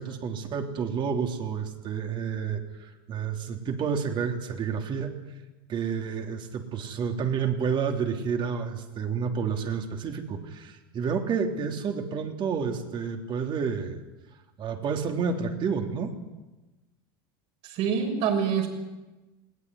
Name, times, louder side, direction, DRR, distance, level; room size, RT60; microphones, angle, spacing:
voice 1, 0.0-5.1 5.7-14.0 14.6-16.1, right 6 dB, 40° right, 4 dB, 3.3 m, -30 dB
voice 2, 17.6-18.7, right 7 dB, 60° right, 4 dB, 6.6 m, -26 dB
21.0 x 17.0 x 9.6 m, 1.1 s
supercardioid pair, 105°, 12 cm